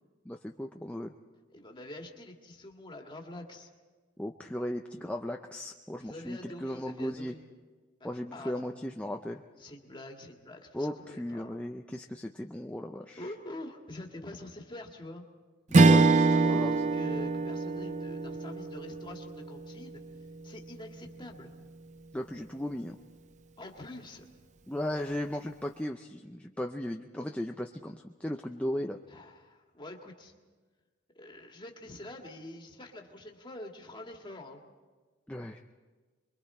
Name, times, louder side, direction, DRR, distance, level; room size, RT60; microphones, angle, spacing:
voice 1, 0.3-1.1 4.2-7.3 8.0-9.4 10.7-13.2 15.7-16.8 22.1-23.0 24.7-29.0 35.3-35.6, left 1 dB, 5° left, 3 dB, 0.5 m, -36 dB
voice 2, 1.5-3.7 6.0-7.4 8.0-8.7 9.6-11.5 13.2-15.2 16.3-20.0 20.4-21.5 23.6-24.3 29.1-30.3 31.2-34.6, left 1 dB, 25° left, 2 dB, 1.9 m, -46 dB
Strum, 15.7-20.3, right 3 dB, 40° right, 0.5 m, -25 dB
27.5 x 22.5 x 4.3 m, 1.4 s
head